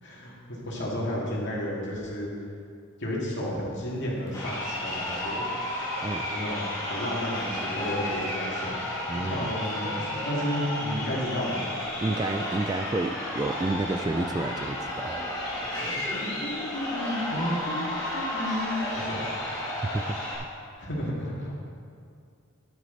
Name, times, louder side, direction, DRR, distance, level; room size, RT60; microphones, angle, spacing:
voice 1, 0.0-2.3 3.0-5.5 6.2-8.8 9.2-11.7 15.6-19.3 20.8-21.5, left 1 dB, 55° left, -5 dB, 2.4 m, -32 dB
Crowd, 4.3-20.3, left 1 dB, 20° left, 2.1 m, -32 dB
voice 2, 9.1-9.5 12.0-15.2 19.9-20.2, right 2 dB, 20° right, 6 dB, 0.3 m, -30 dB
10.5 x 9.6 x 4.1 m, 2.4 s
head